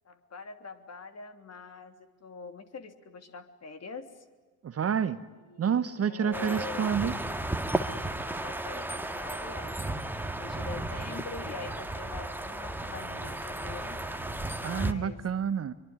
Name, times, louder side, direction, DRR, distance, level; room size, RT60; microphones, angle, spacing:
voice 1, 0.0-4.2 5.5-5.7 6.0-6.9 8.2-10.1 10.3-14.0 14.5-15.2, left 4 dB, 35° left, 8 dB, 3.2 m, -44 dB
voice 2, 4.6-5.2 5.6-7.1 14.6-15.7, right 7 dB, 30° right, 13 dB, 1.2 m, -29 dB
sound 1, 6.3-14.9, right 1 dB, 5° right, 2.0 m, -34 dB
24.0 x 24.0 x 9.6 m, 1.3 s
hypercardioid pair, 65°, 45 cm